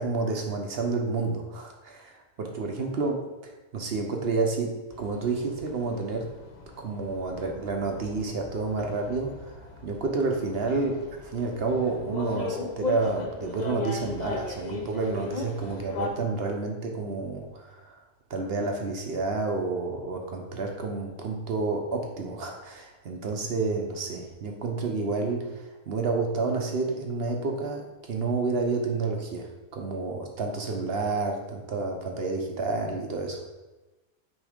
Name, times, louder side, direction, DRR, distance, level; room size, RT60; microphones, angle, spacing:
voice 1, 0.0-6.3 6.8-9.6 9.8-11.1 11.3-18.0 18.3-27.8 28.1-33.4, right 3 dB, 55° right, 2 dB, 0.9 m, -30 dB
sound 1, 4.9-16.1, left 3 dB, 45° left, 0.6 m, -38 dB
6.3 x 3.1 x 5.0 m, 1.1 s
omnidirectional pair, 1.4 m